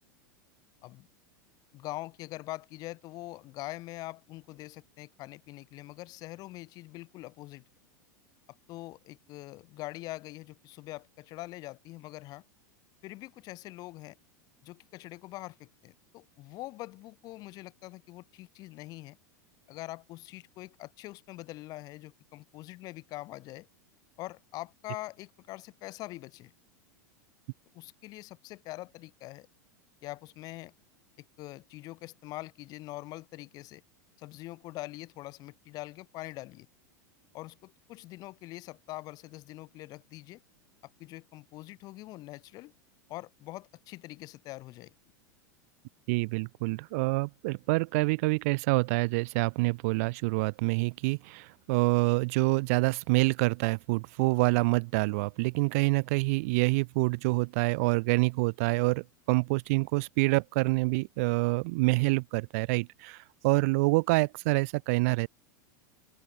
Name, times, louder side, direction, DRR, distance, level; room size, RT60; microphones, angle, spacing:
voice 1, 1.7-7.6 8.7-12.4 13.0-14.2 14.6-19.2 19.7-23.7 24.2-26.5 27.7-29.5 30.0-30.7 31.2-33.8 34.2-36.7 37.3-40.4 41.0-42.7 43.1-44.9, left 18 dB, 40° left, 1.1 m, -43 dB
voice 2, 46.1-65.3, right 26 dB, 50° right, 0.7 m, -27 dB
open air
figure-of-eight pair, 85°, 10 cm